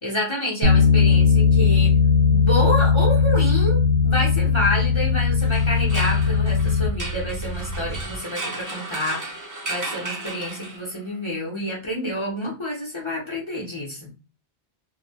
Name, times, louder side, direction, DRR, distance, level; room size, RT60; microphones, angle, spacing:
voice 1, 0.0-1.9 2.3-14.1, left 1 dB, 30° left, -4 dB, 0.8 m, -28 dB
Bass guitar, 0.6-6.9, left 6 dB, 60° right, 0.7 m, -18 dB
sound 1, 0.7-8.2, right 1 dB, 5° right, 0.8 m, -34 dB
sound 2, 5.4-11.1, right 2 dB, 30° right, 0.3 m, -35 dB
2.7 x 2.1 x 2.7 m, 0.31 s
omnidirectional pair, 1.1 m